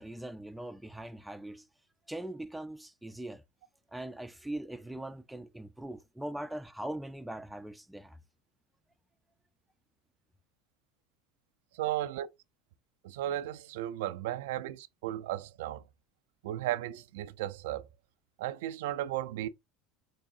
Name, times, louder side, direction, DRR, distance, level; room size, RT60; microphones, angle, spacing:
voice 1, 0.0-1.7 2.1-3.4 3.9-8.2, right 1 dB, 5° right, 0.4 m, -41 dB
voice 2, 11.7-12.3 13.0-15.8 16.4-17.9 18.4-19.5, right 13 dB, 80° right, 0.3 m, -35 dB
3.8 x 3.6 x 2.6 m
hypercardioid pair, 85°, 0 cm